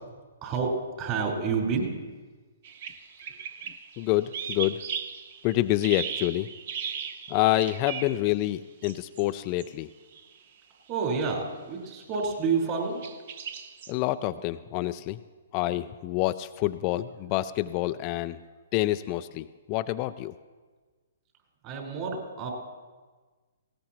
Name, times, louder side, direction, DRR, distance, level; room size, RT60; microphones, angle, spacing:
voice 1, 0.4-1.9 10.9-13.0 21.6-22.5, right 5 dB, 35° right, 0 dB, 4.3 m, -29 dB
sound 1, 2.6-8.3 8.8-9.3 9.6-9.7 10.1-10.3 11.0-11.3 12.0-12.3 13.0-13.9, right 7 dB, 50° right, 0.9 m, -37 dB
voice 2, 4.0-4.8 5.4-6.5 7.3-9.9 13.9-15.2 15.5-18.4 18.7-20.3, left 16 dB, 35° left, 11 dB, 0.4 m, -27 dB
19.0 x 17.5 x 3.0 m, 1.4 s
hypercardioid pair, 130°, 0 cm